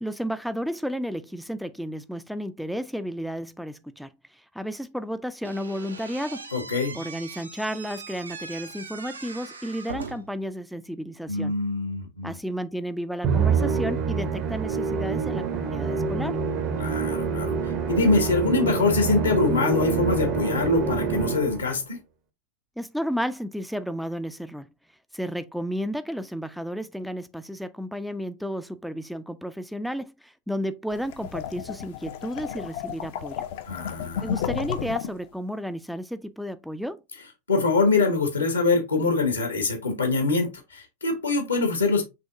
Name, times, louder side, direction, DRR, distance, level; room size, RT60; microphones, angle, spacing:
voice 1, 0.0-6.5 6.9-11.5 12.2-16.4 22.8-24.7 25.1-33.4 34.2-37.0, equal, ahead, 0.4 m, -32 dB
Slam / Squeak, 5.4-10.4, right 4 dB, 75° right, 0.6 m, -40 dB
voice 2, 6.5-7.0 11.3-12.4 16.8-17.5 17.9-22.0 33.6-34.3 37.5-42.0, left 3 dB, 75° left, 1.2 m, -24 dB
Musical instrument, 13.2-21.7, right 5 dB, 35° right, 0.7 m, -26 dB
sound 1, 31.0-35.3, left 9 dB, 50° left, 0.5 m, -33 dB
5.6 x 2.9 x 2.5 m
figure-of-eight pair, 90°, 0 cm